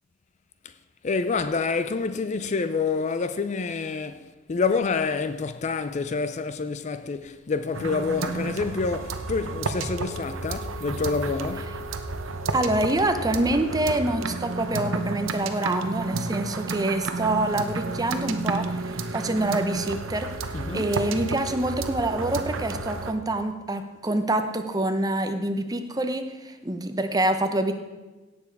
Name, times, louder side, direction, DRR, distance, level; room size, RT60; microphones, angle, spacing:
voice 1, 1.0-11.8 20.5-20.9, left 4 dB, 35° left, 0.4 m, -27 dB
sound 1, 7.7-23.1, right 3 dB, 80° right, 0.8 m, -31 dB
voice 2, 12.5-20.3 20.7-27.7, right 1 dB, 20° right, 0.8 m, -26 dB
16.5 x 7.2 x 4.7 m
head